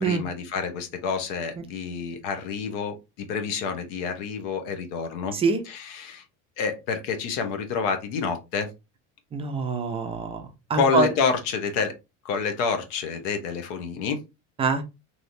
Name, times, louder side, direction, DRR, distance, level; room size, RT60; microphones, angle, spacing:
voice 1, 0.0-5.3 5.6-6.2 6.6-8.7 10.7-11.9 12.2-14.2, left 5 dB, 75° left, 7 dB, 1.0 m, -28 dB
voice 2, 9.3-10.4 10.7-11.1 14.6-14.8, right 4 dB, 15° right, 5 dB, 0.4 m, -24 dB
3.2 x 2.8 x 2.6 m, 0.25 s
cardioid pair, 155°, 37 cm